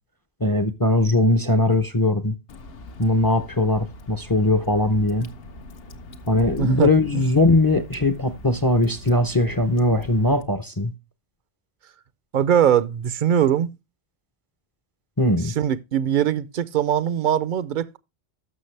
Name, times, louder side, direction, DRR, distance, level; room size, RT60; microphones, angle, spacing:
voice 1, 0.4-2.4 3.0-5.3 6.3-10.9 15.2-15.5, left 2 dB, 25° left, 0.6 m, -20 dB
Water / Drip, 2.5-10.4, left 2 dB, 70° left, 1.1 m, -41 dB
voice 2, 6.6-6.9 12.3-13.7 15.4-18.0, right 9 dB, 55° right, 0.7 m, -21 dB
12.5 x 6.1 x 3.2 m
omnidirectional pair, 1.1 m